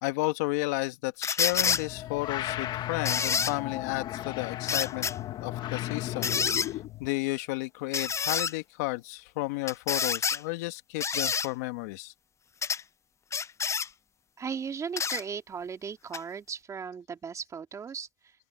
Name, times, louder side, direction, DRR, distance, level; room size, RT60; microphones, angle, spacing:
voice 1, 0.0-5.1 5.4-12.1, left 22 dB, 85° left, 1.8 m, -32 dB
sound 1, 1.2-1.8 3.1-3.5 4.7-5.1 6.2-6.7 7.9-8.5 9.7-10.4 11.0-11.5 12.6-12.8 13.3-13.9 15.0-15.2 16.1-16.2, left 6 dB, 35° left, 1.0 m, -28 dB
sound 2, 1.5-7.1, left 14 dB, 60° left, 2.3 m, -35 dB
voice 2, 14.4-18.3, right 6 dB, 40° right, 2.9 m, -37 dB
open air
hypercardioid pair, 70°, 9 cm